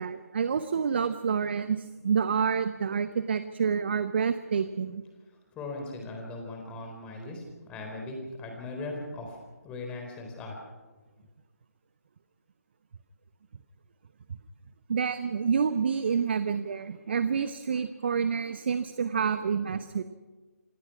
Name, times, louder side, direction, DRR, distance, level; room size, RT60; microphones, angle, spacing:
voice 1, 0.0-5.0 14.3-14.4 14.9-20.0, right 6 dB, 40° right, 12 dB, 0.9 m, -28 dB
voice 2, 5.5-9.4 9.6-10.6, left 2 dB, 10° left, 2 dB, 4.0 m, -39 dB
27.0 x 18.0 x 6.0 m, 1.3 s
figure-of-eight pair, 145°, 9 cm